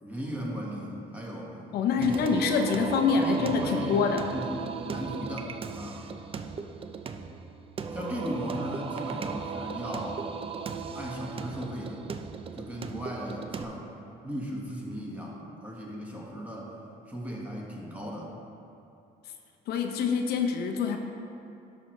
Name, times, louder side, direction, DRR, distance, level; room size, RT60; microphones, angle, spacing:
voice 1, 0.0-1.6 1.9-2.7 3.1-6.1 7.9-10.3 10.9-12.0 12.5-13.9 14.2-16.7 17.1-18.3, equal, 10° right, -3 dB, 1.5 m, -36 dB
voice 2, 1.7-4.2 19.7-21.0, left 5 dB, 70° left, 4 dB, 0.7 m, -26 dB
Singing, 2.0-13.6, right 5 dB, 35° right, 0.4 m, -37 dB
11.0 x 6.0 x 3.2 m, 2.8 s
cardioid pair, 110°, 17 cm